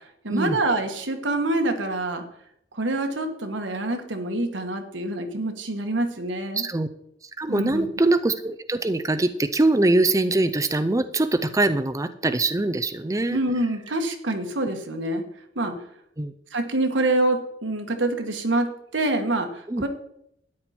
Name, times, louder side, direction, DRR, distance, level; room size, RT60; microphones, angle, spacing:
voice 1, 0.2-2.2 2.7-6.6 7.5-7.9 13.3-15.2 15.6-15.7 16.5-19.9, right 2 dB, 85° right, 5 dB, 1.7 m, -26 dB
voice 2, 6.5-6.9 7.4-13.4 16.2-16.3 19.7-19.8, right 2 dB, 15° right, 9 dB, 0.5 m, -23 dB
13.0 x 9.8 x 4.4 m, 0.75 s
head